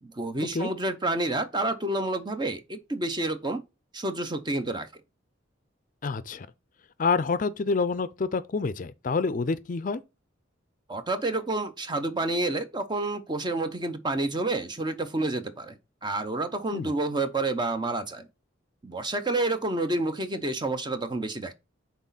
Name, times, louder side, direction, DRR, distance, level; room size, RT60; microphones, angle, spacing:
voice 1, 0.0-3.6 3.9-4.9 10.9-15.7 16.0-18.3 18.8-21.5, right 2 dB, 20° right, 0.6 m, -29 dB
voice 2, 6.0-6.5 7.0-10.0 16.7-16.9, left 4 dB, 40° left, 0.4 m, -27 dB
6.1 x 4.0 x 4.0 m
head